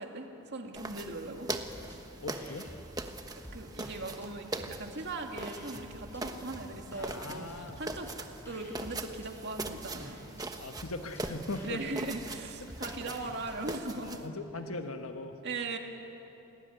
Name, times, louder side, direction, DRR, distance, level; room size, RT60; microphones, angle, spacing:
voice 1, 0.0-1.5 3.5-8.1 8.5-10.2 11.6-14.2 15.4-15.8, right 2 dB, 50° right, 3 dB, 2.3 m, -39 dB
sound 1, 0.7-14.3, right 2 dB, 15° right, 1.1 m, -42 dB
sound 2, 1.5-2.0 2.3-4.3 4.6-6.2 6.5-13.8, equal, 10° left, 4.7 m, -51 dB
voice 2, 2.2-2.7 7.0-7.8 10.6-11.8 12.8-13.0 14.0-15.4, left 2 dB, 70° left, 6 dB, 1.4 m, -40 dB
28.0 x 19.0 x 9.4 m, 3.0 s
head